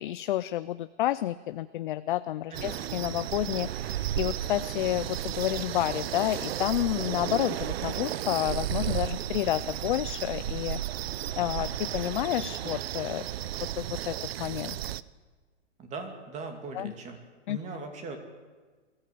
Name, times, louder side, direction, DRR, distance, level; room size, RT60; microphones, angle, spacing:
voice 1, 0.0-10.8 11.4-13.3 13.8-14.8 16.7-16.9 17.5-17.6, left 14 dB, 45° left, 14 dB, 0.5 m, -30 dB
voice 2, 2.5-2.8 15.8-17.2 17.5-18.2, right 3 dB, 20° right, 5 dB, 2.7 m, -39 dB
sound 1, 2.5-15.0, right 12 dB, 55° right, 0.7 m, -33 dB
21.5 x 14.5 x 8.5 m, 1.4 s
hypercardioid pair, 150°, 36 cm